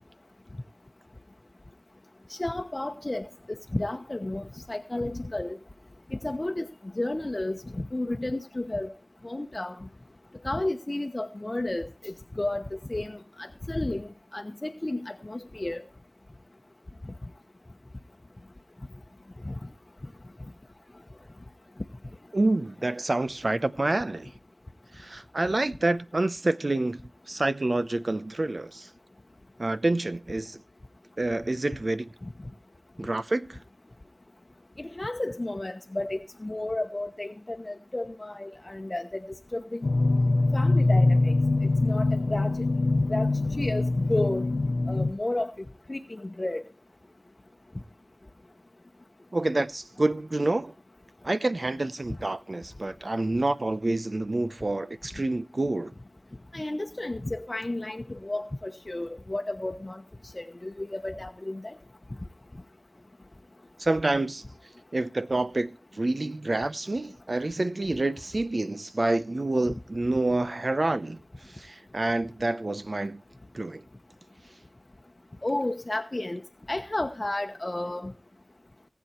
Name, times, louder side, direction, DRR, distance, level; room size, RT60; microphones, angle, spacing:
voice 1, 2.3-3.3 3.7-5.6 6.1-6.7 6.9-8.9 9.2-9.9 10.4-15.8 19.4-19.5 34.8-39.3 39.5-39.9 40.5-41.3 41.8-42.6 43.1-44.4 44.9-45.5 45.9-46.6 56.5-60.0 60.3-61.7 69.7-69.8 75.4-76.4 76.7-78.1, left 2 dB, 35° left, 1.0 m, -32 dB
voice 2, 22.3-24.3 25.0-27.0 27.3-28.9 29.6-30.6 31.2-32.1 33.0-33.6 49.3-50.7 51.2-55.9 63.8-64.4 64.9-71.2 71.5-73.2 73.5-73.8, right 2 dB, 50° right, 0.8 m, -28 dB
sound 1, 39.8-45.1, left 2 dB, 70° left, 0.8 m, -23 dB
18.5 x 8.3 x 4.4 m
wide cardioid pair, 50°, 0 cm